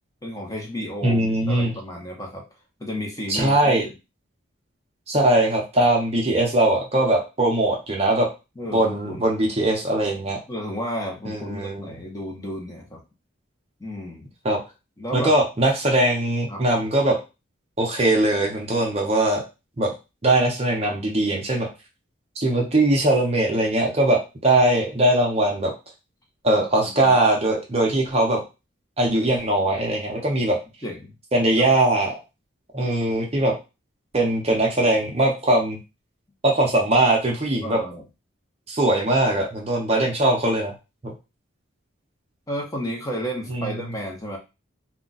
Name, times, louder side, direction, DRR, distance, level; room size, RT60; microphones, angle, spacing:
voice 1, 0.2-2.4 2.8-3.9 8.6-9.3 10.5-13.0 13.8-14.3 15.0-15.3 16.5-16.6 26.8-27.1 30.8-31.1 37.6-38.0 42.5-44.4, equal, 15° left, -1 dB, 0.7 m, -32 dB
voice 2, 1.0-1.8 3.3-3.9 5.1-8.3 8.7-10.4 11.2-11.9 14.4-14.6 15.1-17.2 17.8-19.4 19.8-19.9 20.2-21.7 22.4-25.7 26.4-28.4 29.0-30.6 31.3-32.1 32.7-33.5 34.1-35.8 36.4-37.8 38.7-40.7 41.0-41.1 43.5-43.8, right 1 dB, 30° right, 0 dB, 0.6 m, -21 dB
2.3 x 2.2 x 3.8 m, 0.27 s
head